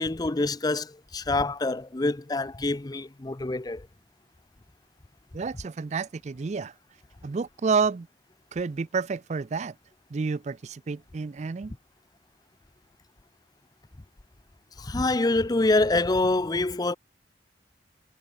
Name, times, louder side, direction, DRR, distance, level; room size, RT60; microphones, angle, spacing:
voice 1, 0.0-3.9 14.8-17.0, left 2 dB, 20° left, 0.6 m, -26 dB
voice 2, 5.3-6.7 7.2-8.1 8.5-9.7 10.1-11.7, right 5 dB, 40° right, 0.4 m, -29 dB
head